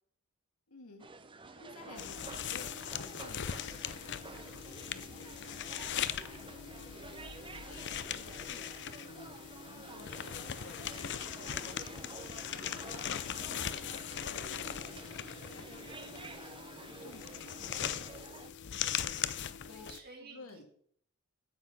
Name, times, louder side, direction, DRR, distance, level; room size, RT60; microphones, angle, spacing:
voice 1, 0.7-1.1 1.6-7.8 8.1-10.1 10.4-13.8 14.1-16.5 16.8-19.9 20.2-20.6, left 3 dB, 85° left, 3 dB, 2.1 m, -55 dB
sound 1, 1.0-18.5, right 3 dB, 25° right, 0.7 m, -50 dB
sound 2, 2.0-20.0, left 9 dB, 55° left, 0.5 m, -40 dB
voice 2, 19.4-20.6, right 4 dB, 45° right, 0 dB, 2.9 m, -53 dB
9.0 x 6.0 x 7.1 m, 0.62 s
head